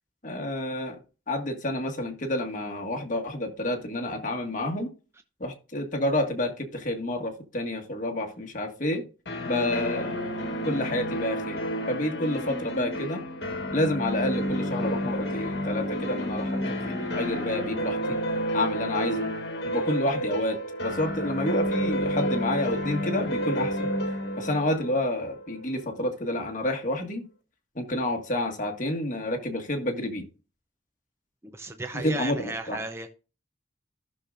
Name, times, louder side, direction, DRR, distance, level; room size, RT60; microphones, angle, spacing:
voice 1, 0.2-1.0 1.3-4.9 5.4-9.0 9.4-10.2 10.6-11.6 11.9-13.2 13.7-18.2 18.5-19.3 19.6-23.9 24.4-27.3 27.7-30.2 31.9-32.8, left 1 dB, 45° left, 2 dB, 1.7 m, -29 dB
sound 1, 9.3-26.0, equal, 60° left, 1.7 m, -30 dB
voice 2, 31.4-33.1, right 2 dB, 15° right, 6 dB, 0.6 m, -35 dB
14.5 x 6.5 x 2.5 m, 0.34 s
head